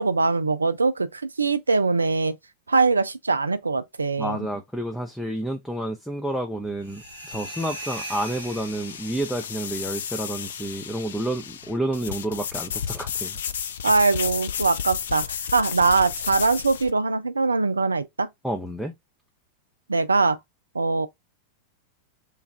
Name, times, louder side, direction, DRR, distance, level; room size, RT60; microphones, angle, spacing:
voice 1, 0.0-2.3 2.7-4.4 13.8-18.3 19.9-20.4 20.7-21.1, right 4 dB, 75° right, 0.4 m, -22 dB
voice 2, 4.2-13.4 18.4-18.9, right 1 dB, ahead, 0.5 m, -30 dB
sound 1, 6.5-16.9, left 8 dB, 65° left, 0.4 m, -33 dB
sound 2, 6.8-9.5, right 1 dB, 90° left, 1.6 m, -38 dB
3.2 x 2.3 x 3.2 m
figure-of-eight pair, 90°, 0 cm